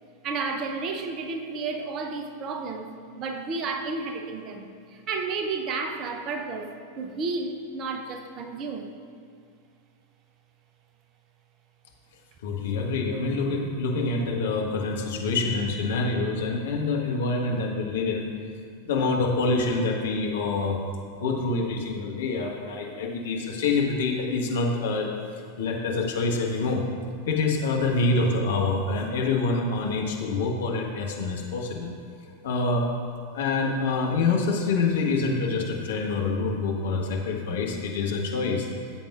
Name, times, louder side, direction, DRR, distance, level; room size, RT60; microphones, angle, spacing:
voice 1, 0.2-9.0, right 4 dB, 35° right, 4 dB, 0.8 m, -32 dB
voice 2, 12.4-18.2 18.8-20.8 21.1-25.1 25.6-26.8 27.3-31.9 32.4-32.9 33.3-38.7, left 3 dB, 60° left, 0 dB, 1.4 m, -26 dB
15.5 x 7.6 x 2.5 m, 2.2 s
figure-of-eight pair, 90°, 0 cm